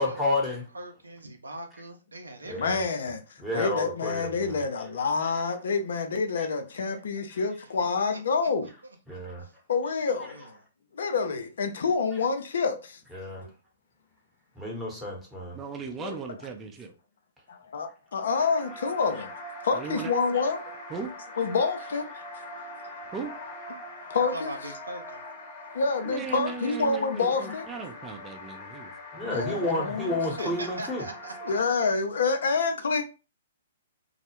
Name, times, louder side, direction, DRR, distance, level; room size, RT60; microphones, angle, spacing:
voice 1, 0.0-0.6 2.5-2.8 3.4-4.6 9.1-9.5 13.1-13.5 14.6-15.6 29.1-31.0, left 2 dB, ahead, 1.0 m, -30 dB
voice 2, 0.7-2.8 8.1-8.7 9.1-9.5 10.3-10.5 24.3-25.2 30.4-31.6, right 1 dB, 90° right, 0.6 m, -41 dB
voice 3, 2.6-3.2 3.5-8.7 9.7-10.4 10.9-13.0 13.4-13.5 16.0-16.2 17.5-19.3 19.6-20.6 21.4-22.1 24.1-24.5 25.7-27.7 29.3-30.6 31.5-33.0, left 4 dB, 65° left, 0.5 m, -27 dB
voice 4, 15.5-16.9 19.7-20.1 20.9-21.1 23.1-23.3 26.0-28.9, right 6 dB, 20° right, 0.5 m, -37 dB
sound 1, 18.3-31.6, left 1 dB, 40° left, 0.9 m, -42 dB
2.2 x 2.0 x 2.9 m
hypercardioid pair, 120°, 0 cm